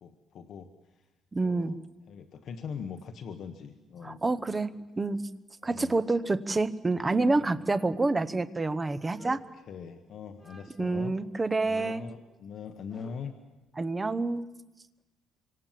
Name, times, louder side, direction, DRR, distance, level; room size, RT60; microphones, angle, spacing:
voice 1, 0.0-1.1 1.4-1.7 2.1-4.2 4.7-4.8 5.6-6.0 7.2-7.6 9.2-11.2 11.6-13.3, left 6 dB, 50° left, 6 dB, 1.3 m, -42 dB
voice 2, 1.3-1.7 4.0-5.3 5.6-9.4 10.8-12.0 13.8-14.5, right 3 dB, 15° right, 13 dB, 0.9 m, -28 dB
sound 1, 9.1-10.0 10.4-11.0 11.7-13.4, equal, 5° left, 3.1 m, -55 dB
26.0 x 25.5 x 7.6 m, 1.1 s
cardioid pair, 160°, 0 cm